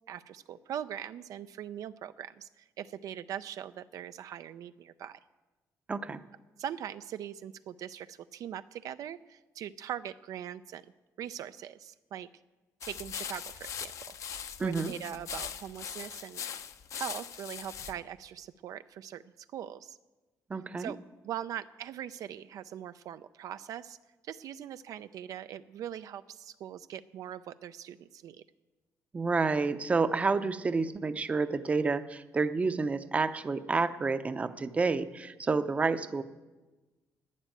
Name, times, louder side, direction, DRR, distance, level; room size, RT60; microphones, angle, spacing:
voice 1, 0.1-5.2 6.6-10.9 11.2-12.3 12.8-13.9 14.2-16.4 17.0-20.0 20.8-21.0 21.2-24.0 24.2-28.4, right 10 dB, 65° right, 12 dB, 0.4 m, -41 dB
voice 2, 5.9-6.2 14.6-14.9 20.5-20.9 29.1-36.2, right 4 dB, 20° right, 11 dB, 0.6 m, -29 dB
sound 1, 12.8-17.9, left 8 dB, 50° left, 0.6 m, -41 dB
11.5 x 10.0 x 9.0 m, 1.2 s
cardioid pair, 150°, 6 cm